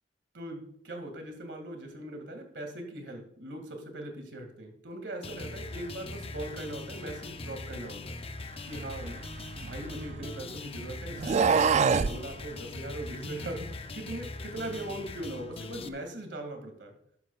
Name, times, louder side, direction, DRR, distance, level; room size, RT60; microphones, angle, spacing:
voice 1, 0.3-8.2 8.7-9.2 9.6-16.9, right 1 dB, 70° right, 4 dB, 2.2 m, -40 dB
sound 1, 5.2-15.9, left 3 dB, 35° left, 0.6 m, -41 dB
sound 2, 8.9-10.4 11.1-12.2, right 5 dB, 40° right, 0.3 m, -26 dB
12.0 x 11.5 x 2.3 m, 0.69 s
head